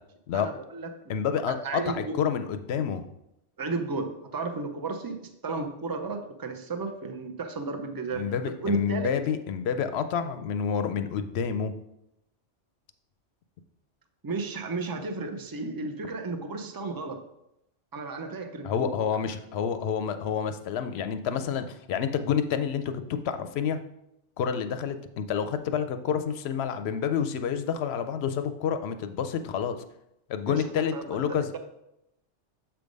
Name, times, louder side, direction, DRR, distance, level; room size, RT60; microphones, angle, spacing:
voice 1, 0.3-1.2 1.6-2.2 3.6-9.1 14.2-17.2 17.9-18.9 30.5-31.6, right 3 dB, 30° right, 6 dB, 0.4 m, -34 dB
voice 2, 1.1-3.0 8.2-11.7 18.6-23.8 24.4-29.8 30.3-31.6, left 7 dB, 70° left, 10 dB, 0.8 m, -29 dB
7.3 x 3.5 x 5.2 m, 0.83 s
omnidirectional pair, 1.2 m